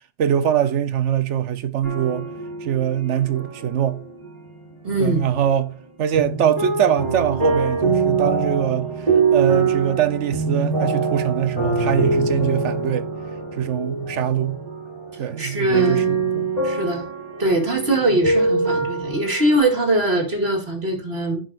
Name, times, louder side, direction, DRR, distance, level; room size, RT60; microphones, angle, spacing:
voice 1, 0.2-2.3 2.6-4.0 5.0-8.9 9.3-13.1 13.6-14.6 15.2-16.5, right 9 dB, 75° right, 1.1 m, -23 dB
sound 1, 1.8-5.8 6.1-19.6, right 4 dB, 30° right, 3.8 m, -24 dB
voice 2, 4.8-5.2 15.4-16.1 16.6-17.1 17.4-21.4, right 1 dB, 55° right, 2.7 m, -22 dB
16.0 x 5.5 x 2.5 m
omnidirectional pair, 1.2 m